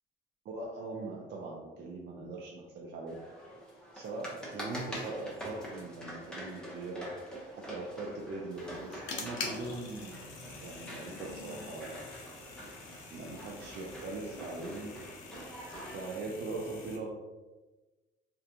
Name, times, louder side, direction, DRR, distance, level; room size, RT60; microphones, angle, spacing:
voice 1, 0.4-3.2 3.9-7.1 7.5-10.2 10.6-12.0 13.1-14.9 15.8-17.2, right 3 dB, 60° right, -2 dB, 0.4 m, -41 dB
sound 1, 3.1-16.2, equal, 5° left, 0.7 m, -46 dB
sound 2, 8.5-17.0, left 4 dB, 85° left, 0.5 m, -46 dB
2.3 x 2.2 x 2.7 m, 1.2 s
cardioid pair, 90°, 20 cm